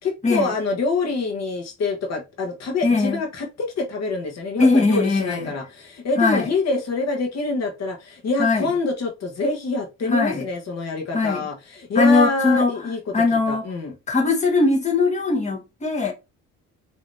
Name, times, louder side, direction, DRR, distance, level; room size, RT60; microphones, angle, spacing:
voice 1, 0.0-13.0 13.3-13.9, left 3 dB, 60° left, 1.2 m, -26 dB
voice 2, 2.8-3.2 4.6-5.5 6.2-6.5 8.4-8.7 10.1-10.4 11.1-11.5 11.9-12.7 13.1-13.6 14.1-16.1, left 3 dB, 25° left, 1.3 m, -20 dB
5.3 x 2.9 x 2.6 m
cardioid pair, 90°, 30 cm